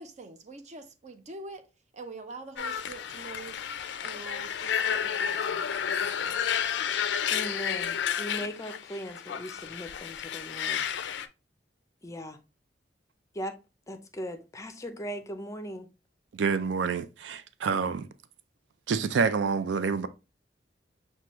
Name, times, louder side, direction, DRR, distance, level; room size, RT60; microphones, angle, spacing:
voice 1, 0.0-1.7 1.9-3.6 4.0-6.4, right 3 dB, 40° right, 0.6 m, -45 dB
sound 1, 2.6-11.3, left 8 dB, 75° left, 0.4 m, -31 dB
voice 2, 7.3-10.8 12.0-12.4 13.3-13.6 13.9-15.9, equal, 20° left, 0.5 m, -38 dB
voice 3, 16.3-18.1 18.9-20.1, right 5 dB, 90° right, 0.4 m, -27 dB
5.9 x 2.3 x 2.9 m
head